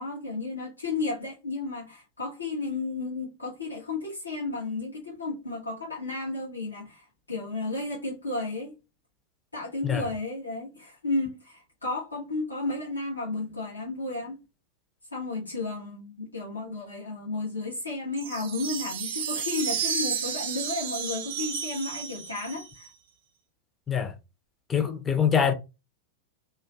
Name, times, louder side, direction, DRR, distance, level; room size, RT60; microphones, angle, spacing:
voice 1, 0.0-8.7 9.5-14.4 15.1-22.9, left 3 dB, 85° left, 0.7 m, -33 dB
sound 1, 18.1-22.9, right 7 dB, 55° right, 0.4 m, -32 dB
voice 2, 24.7-25.5, left 7 dB, 20° left, 0.4 m, -24 dB
2.4 x 2.2 x 2.3 m
figure-of-eight pair, 90°, 0 cm